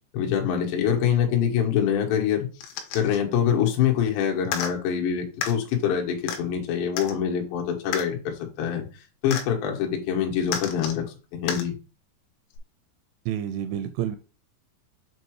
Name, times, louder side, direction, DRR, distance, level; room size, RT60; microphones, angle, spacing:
voice 1, 0.1-2.5 2.9-8.9 9.2-11.0 11.3-11.7, left 8 dB, 70° left, 1 dB, 3.2 m, -25 dB
sound 1, 2.6-3.2 4.5-4.7 5.4-5.5 6.3-6.4 7.0-7.2 7.9-8.1 9.3-9.5 10.5-11.0 11.5-11.6 12.6-12.7, left 6 dB, 90° left, 3.4 m, -31 dB
voice 2, 13.3-14.2, right 10 dB, 85° right, 9 dB, 2.8 m, -29 dB
7.7 x 2.7 x 4.7 m, 0.34 s
omnidirectional pair, 5.6 m